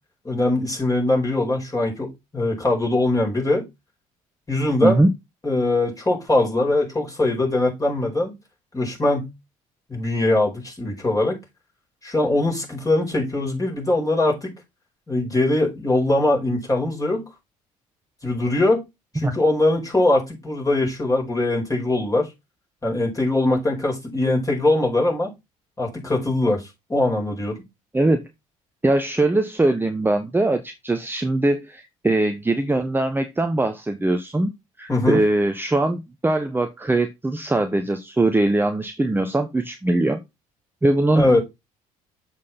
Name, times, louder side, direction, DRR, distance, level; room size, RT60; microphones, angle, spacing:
voice 1, 0.2-3.7 4.5-5.0 5.4-8.3 8.7-9.3 9.9-11.4 12.0-14.5 15.1-17.3 18.2-18.9 19.1-22.3 22.8-25.3 25.8-27.6 34.9-35.2 41.1-41.4, left 2 dB, 20° left, 5.1 m, -21 dB
voice 2, 4.8-5.1 19.2-19.3 27.9-28.2 28.8-34.5 34.8-40.2 40.8-41.4, right 2 dB, 10° right, 0.9 m, -21 dB
7.4 x 6.1 x 4.3 m
hypercardioid pair, 60°, 18 cm